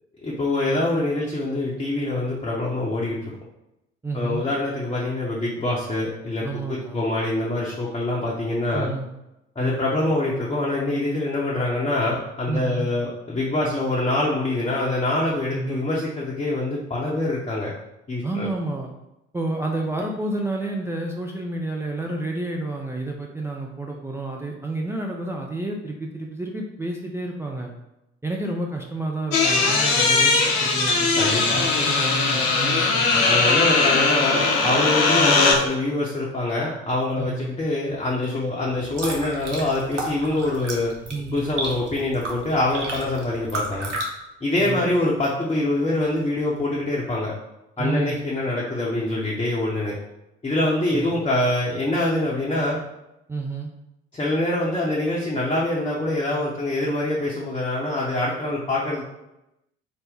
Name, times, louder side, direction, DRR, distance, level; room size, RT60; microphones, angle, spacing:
voice 1, 0.2-3.2 4.1-8.9 9.6-17.7 18.1-18.5 31.2-31.6 33.2-40.9 41.3-43.9 44.4-47.3 47.8-49.9 50.4-52.8 54.1-59.0, left 2 dB, 15° left, -5 dB, 0.7 m, -25 dB
voice 2, 4.0-4.4 6.4-7.0 8.7-9.1 9.6-10.0 12.5-12.9 15.5-15.8 18.2-18.9 19.3-27.7 28.2-33.2 35.2-35.4 37.2-37.5 41.1-41.5 44.6-44.8 47.8-48.2 50.9-51.1 53.3-53.7, right 2 dB, 10° right, 0 dB, 0.4 m, -30 dB
sound 1, 29.3-35.5, left 3 dB, 50° left, 0.8 m, -19 dB
sound 2, 38.7-44.1, right 1 dB, 85° right, 0.6 m, -33 dB
3.9 x 2.1 x 3.4 m, 0.91 s
figure-of-eight pair, 50°, 35 cm